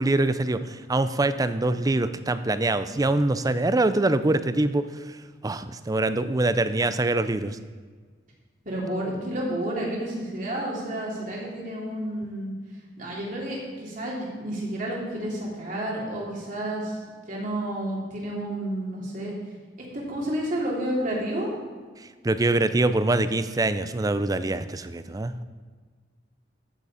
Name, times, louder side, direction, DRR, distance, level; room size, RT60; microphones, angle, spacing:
voice 1, 0.0-4.9 5.4-7.6 22.2-25.4, right 2 dB, 20° right, 12 dB, 0.5 m, -24 dB
voice 2, 8.6-12.5 13.0-17.0 17.3-19.3 19.9-21.5, right 1 dB, 50° right, -4 dB, 3.2 m, -30 dB
14.0 x 6.8 x 5.0 m, 1.5 s
head